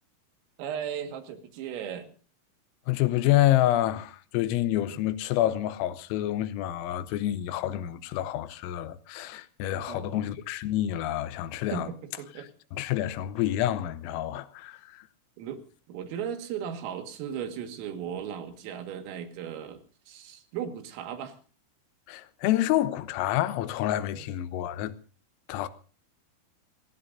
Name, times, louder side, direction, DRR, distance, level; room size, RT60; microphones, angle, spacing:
voice 1, 0.6-2.1 4.9-5.0 9.9-10.2 11.7-12.5 15.4-15.6 15.9-19.8 20.1-21.4 24.2-24.3, right 8 dB, 85° right, 4.5 m, -36 dB
voice 2, 2.9-11.9 12.7-15.1 22.1-24.9 25.5-25.7, left 13 dB, 85° left, 3.6 m, -28 dB
27.5 x 18.0 x 2.7 m
omnidirectional pair, 5.9 m